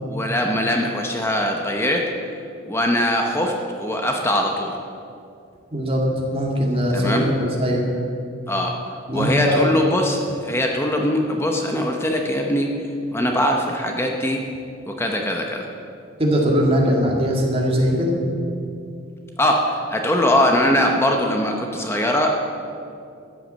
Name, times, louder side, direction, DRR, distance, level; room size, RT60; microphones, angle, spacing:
voice 1, 0.1-2.1 2.7-4.7 6.9-7.3 8.5-8.7 9.1-12.7 13.1-14.4 14.9-15.7 19.4-22.3, left 1 dB, 10° left, 1 dB, 0.9 m, -21 dB
voice 2, 5.7-7.8 9.1-9.7 16.2-18.2, equal, 30° right, -1 dB, 2.1 m, -20 dB
13.5 x 8.2 x 7.5 m, 2.5 s
head